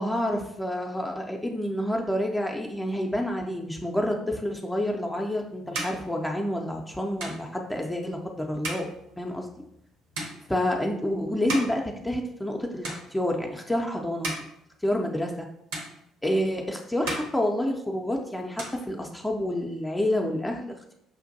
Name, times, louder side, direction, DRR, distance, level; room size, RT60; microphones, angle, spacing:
voice 1, 0.0-8.9 9.2-9.5 10.5-14.3 14.8-15.5 16.2-20.9, left 1 dB, 5° left, 1 dB, 0.5 m, -28 dB
sound 1, 4.9-12.5 12.8-13.5 14.0-15.4 15.7-16.6 16.9-18.1 18.4-19.5, right 1 dB, 65° right, 1.0 m, -38 dB
6.1 x 2.5 x 2.6 m, 0.77 s
figure-of-eight pair, 50°, 0 cm